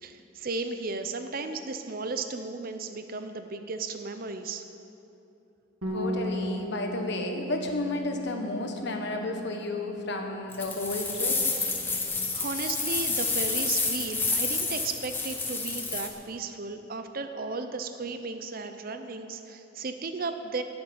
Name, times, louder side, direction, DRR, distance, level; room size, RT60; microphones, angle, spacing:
voice 1, 0.0-4.6 11.8-12.1 12.3-20.6, right 3 dB, 45° right, 8 dB, 0.6 m, -35 dB
Bass guitar, 5.8-12.1, equal, 85° right, 2.2 m, -38 dB
voice 2, 5.9-11.4, left 2 dB, 55° left, 3 dB, 1.4 m, -32 dB
sound 1, 10.5-16.1, left 3 dB, 10° left, 1.1 m, -29 dB
13.0 x 6.9 x 9.0 m, 2.8 s
head